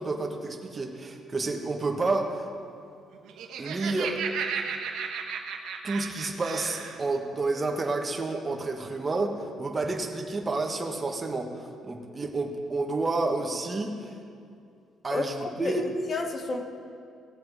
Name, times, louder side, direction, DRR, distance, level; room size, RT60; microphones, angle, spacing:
voice 1, 0.0-2.5 3.6-4.2 5.8-14.1 15.0-15.9, right 3 dB, 25° right, 2 dB, 1.3 m, -30 dB
Laughter, 3.1-7.0, right 6 dB, 80° right, 1.1 m, -34 dB
voice 2, 15.1-16.6, left 3 dB, 35° left, 5 dB, 1.1 m, -32 dB
18.0 x 7.3 x 4.8 m, 2.4 s
cardioid pair, 125°, 0 cm